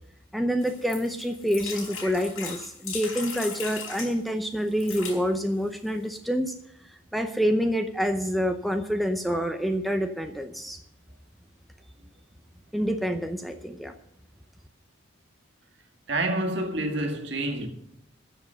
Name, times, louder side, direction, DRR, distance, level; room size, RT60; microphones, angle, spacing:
voice 1, 0.3-6.5 6.9-10.8 12.7-14.0, equal, ahead, 0.6 m, -27 dB
sound 1, 0.6-4.1 4.7-5.2 5.9-6.0 6.1-6.2, left 5 dB, 90° left, 4.9 m, -38 dB
voice 2, 16.1-17.7, right 1 dB, 55° right, 2.0 m, -28 dB
13.5 x 7.4 x 7.6 m
head